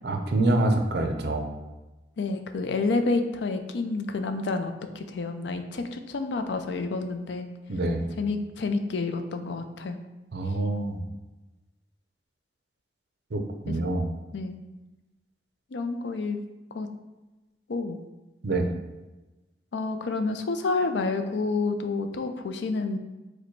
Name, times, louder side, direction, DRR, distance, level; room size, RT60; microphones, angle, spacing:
voice 1, 0.0-1.5 7.7-8.1 10.3-11.0 13.3-14.1 18.4-18.7, right 2 dB, 60° right, 5 dB, 0.5 m, -26 dB
voice 2, 2.2-7.5 8.2-10.0 13.7-13.8 14.3-14.6 15.7-16.4 16.7-16.9 17.7-18.0 19.7-23.0, left 3 dB, 70° left, 7 dB, 0.4 m, -29 dB
4.8 x 2.2 x 4.5 m, 1.1 s
head